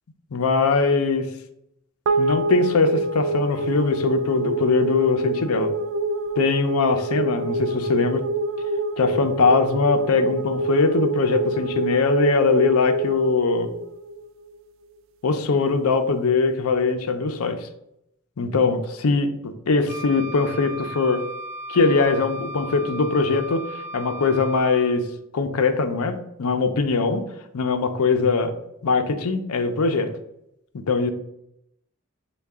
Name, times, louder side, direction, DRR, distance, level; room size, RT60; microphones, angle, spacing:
voice 1, 0.3-1.3 2.2-5.7 6.4-8.2 9.0-13.7 15.2-17.7 18.4-21.2 21.7-23.6 23.9-25.1 25.3-27.2 27.5-28.5 28.8-30.1 30.7-31.1, left 4 dB, 80° left, 8 dB, 0.6 m, -21 dB
sound 1, 2.1-14.6, right 2 dB, 60° right, 0.3 m, -26 dB
Wind instrument woodwind instrument, 19.9-25.0, equal, 10° right, 0.5 m, -36 dB
6.5 x 2.3 x 3.5 m, 0.80 s
head